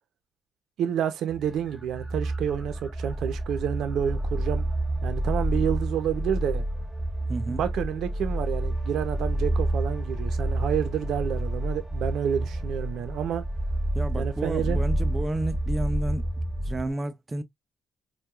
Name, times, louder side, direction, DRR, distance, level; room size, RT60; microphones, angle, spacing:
voice 1, 0.8-4.6 5.0-6.7 7.5-13.4 14.2-14.8, right 9 dB, 75° right, 0.6 m, -29 dB
sound 1, 1.3-16.9, right 1 dB, 5° right, 1.0 m, -29 dB
voice 2, 7.3-7.6 13.9-16.3 16.6-17.4, right 2 dB, 25° right, 0.5 m, -31 dB
4.5 x 2.3 x 2.3 m
cardioid pair, 90°, 0 cm